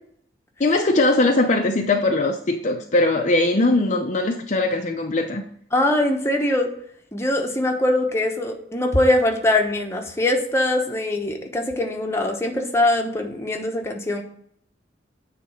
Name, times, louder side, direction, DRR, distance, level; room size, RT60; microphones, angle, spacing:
voice 1, 0.6-5.4, left 2 dB, 40° left, 2 dB, 0.7 m, -20 dB
voice 2, 5.7-6.7 7.1-14.2, left 1 dB, 15° left, 2 dB, 1.0 m, -22 dB
9.3 x 3.4 x 4.9 m, 0.64 s
head